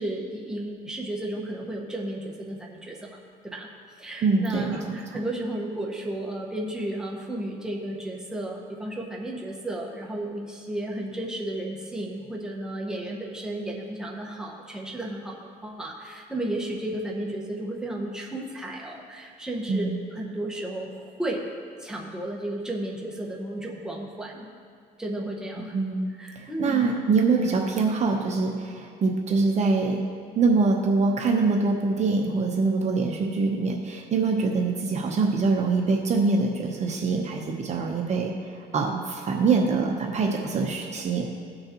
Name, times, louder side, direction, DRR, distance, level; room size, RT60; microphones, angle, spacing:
voice 1, 0.0-3.2 3.4-3.7 4.0-21.4 21.8-24.5 25.0-25.8 26.1-26.9, right 1 dB, 5° right, -1 dB, 1.3 m, -33 dB
voice 2, 4.2-5.0 19.7-20.0 25.6-26.1 26.6-30.0 30.3-38.3 38.7-41.3, right 4 dB, 40° right, 1 dB, 0.9 m, -24 dB
17.0 x 6.5 x 2.9 m, 2.3 s
cardioid pair, 110°, 17 cm